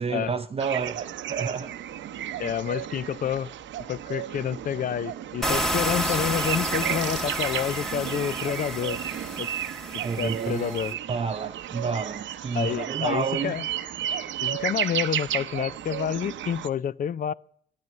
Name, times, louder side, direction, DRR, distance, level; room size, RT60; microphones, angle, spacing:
voice 1, 0.0-1.7 10.0-13.5, right 5 dB, 30° right, 0.6 m, -30 dB
sound 1, 0.6-16.7, right 11 dB, 70° right, 0.7 m, -33 dB
voice 2, 2.4-3.5 3.9-9.0 9.4-9.5 10.2-10.9 12.5-13.7 14.4-17.3, left 9 dB, 45° left, 0.5 m, -29 dB
sound 2, 5.4-10.9, right 1 dB, ahead, 1.4 m, -30 dB
12.0 x 9.4 x 8.3 m
cardioid pair, 90°, 20 cm